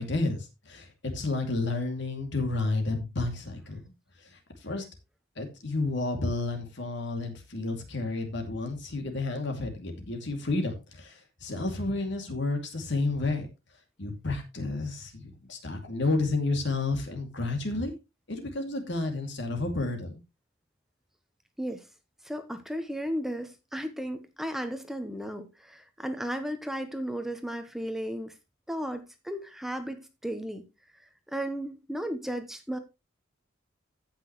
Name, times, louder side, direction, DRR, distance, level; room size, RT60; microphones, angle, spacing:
voice 1, 0.0-3.8 4.2-4.8 5.4-13.5 14.0-17.9 18.3-20.2, left 2 dB, 60° left, 2.5 m, -31 dB
voice 2, 22.2-28.4 28.7-30.6 30.9-32.8, equal, ahead, 0.8 m, -35 dB
15.5 x 6.0 x 3.1 m
head